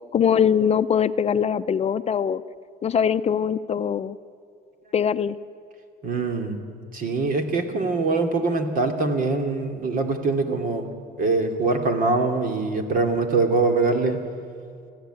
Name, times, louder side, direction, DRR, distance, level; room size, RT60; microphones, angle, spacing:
voice 1, 0.1-2.4 2.8-4.2 4.9-5.4, left 8 dB, 40° left, 12 dB, 0.6 m, -22 dB
voice 2, 6.0-6.6 6.9-10.9 11.2-14.2, right 3 dB, 55° right, 5 dB, 2.8 m, -23 dB
25.0 x 15.0 x 9.2 m, 2.3 s
cardioid pair, 110°, 17 cm